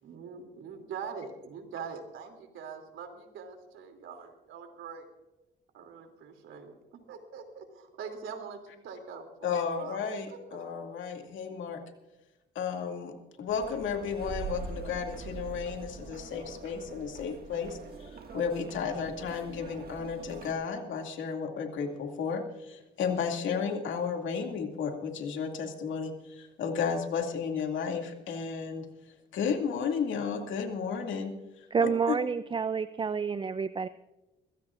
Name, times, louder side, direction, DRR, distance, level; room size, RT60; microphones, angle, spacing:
voice 1, 0.0-5.1 5.7-10.0 10.3-10.7, right 6 dB, 80° right, 5 dB, 2.9 m, -43 dB
voice 2, 9.4-11.8 12.5-28.9 29.3-32.1, left 6 dB, 75° left, 3 dB, 2.4 m, -33 dB
sound 1, 13.5-20.5, right 5 dB, 50° right, 1.9 m, -43 dB
voice 3, 31.7-33.9, right 6 dB, 25° right, 14 dB, 0.4 m, -29 dB
22.5 x 15.5 x 2.5 m, 1.0 s
cardioid pair, 90°, 20 cm